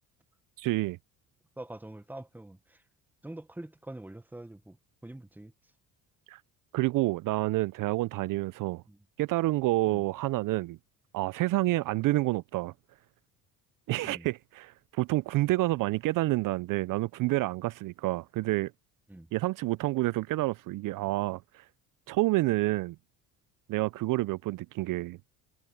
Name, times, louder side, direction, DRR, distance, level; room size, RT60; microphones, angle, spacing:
voice 1, 0.6-1.0 6.3-6.4 6.7-8.8 9.2-10.8 11.1-12.7 13.9-18.7 19.3-21.6 22.1-23.0 23.7-25.2, right 19 dB, 55° right, 0.5 m, -28 dB
voice 2, 1.6-2.8 3.2-4.8 5.0-5.5 8.9-9.0 9.9-10.0 14.0-14.3 19.1-19.3, right 1 dB, 5° right, 1.1 m, -44 dB
supercardioid pair, 85°, 38 cm